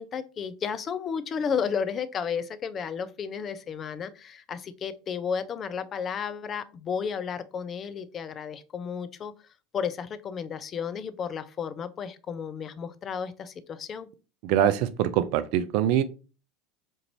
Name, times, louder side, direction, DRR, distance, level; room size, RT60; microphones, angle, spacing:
voice 1, 0.0-9.3 9.7-14.1, left 6 dB, 35° left, 0.4 m, -33 dB
voice 2, 14.4-16.0, right 10 dB, 55° right, 0.4 m, -23 dB
4.5 x 2.5 x 2.9 m
figure-of-eight pair, 75°, 0 cm